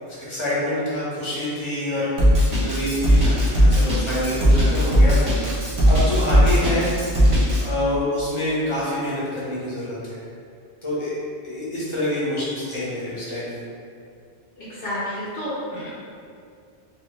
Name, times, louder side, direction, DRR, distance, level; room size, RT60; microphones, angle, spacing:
voice 1, 0.1-2.1 2.6-6.9 7.6-10.2 10.8-11.1 11.4-13.6, left 1 dB, 30° left, -9 dB, 0.8 m, -26 dB
Drum kit, 2.2-7.6, equal, 40° right, 0.7 m, -17 dB
voice 2, 14.6-15.9, left 1 dB, 65° left, -9 dB, 0.8 m, -30 dB
2.8 x 2.3 x 3.0 m, 2.4 s
omnidirectional pair, 1.1 m